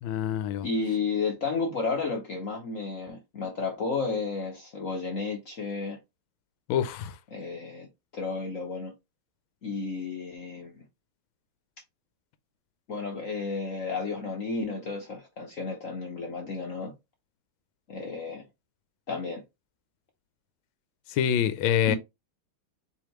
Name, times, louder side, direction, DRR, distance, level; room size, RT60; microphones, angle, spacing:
voice 1, 0.0-0.7 6.7-7.1 21.1-22.0, left 9 dB, 80° left, 1.4 m, -26 dB
voice 2, 0.6-6.0 7.3-7.9 8.1-8.9 9.6-10.8 12.9-16.9 17.9-18.4 19.1-19.4 21.9-22.0, left 4 dB, 55° left, 1.0 m, -32 dB
4.8 x 3.6 x 3.0 m
omnidirectional pair, 2.2 m